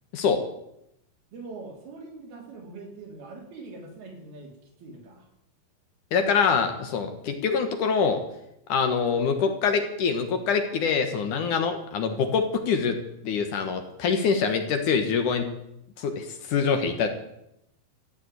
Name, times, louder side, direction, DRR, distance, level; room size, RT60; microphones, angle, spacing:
voice 1, 1.3-5.3, right 3 dB, 75° right, 1 dB, 5.4 m, -43 dB
voice 2, 6.1-8.2 8.7-13.0 13.2-15.5 16.0-17.1, left 5 dB, 60° left, 7 dB, 2.6 m, -25 dB
14.5 x 9.5 x 9.2 m, 0.81 s
omnidirectional pair, 4.4 m